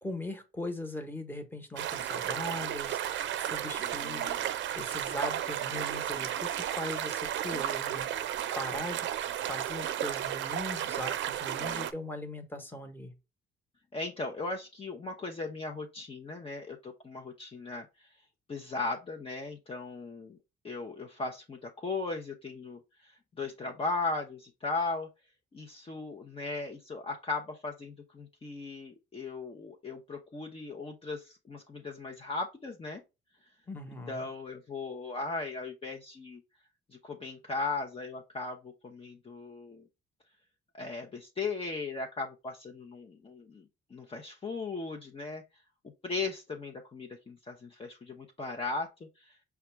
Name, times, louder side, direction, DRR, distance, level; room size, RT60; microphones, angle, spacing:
voice 1, 0.0-3.0 3.4-8.1 8.6-9.1 9.4-13.1 33.7-34.3, left 1 dB, 10° left, 1.1 m, -40 dB
sound 1, 1.8-11.9, right 11 dB, 70° right, 0.5 m, -33 dB
voice 2, 3.8-4.4 11.6-11.9 13.9-17.9 18.5-20.4 20.6-23.1 23.4-25.1 25.5-33.0 34.1-36.4 37.0-39.8 40.7-43.6 43.9-45.4 46.0-48.9 49.2-49.3, left 3 dB, 30° left, 0.7 m, -37 dB
4.9 x 2.3 x 4.3 m
cardioid pair, 90°, 20 cm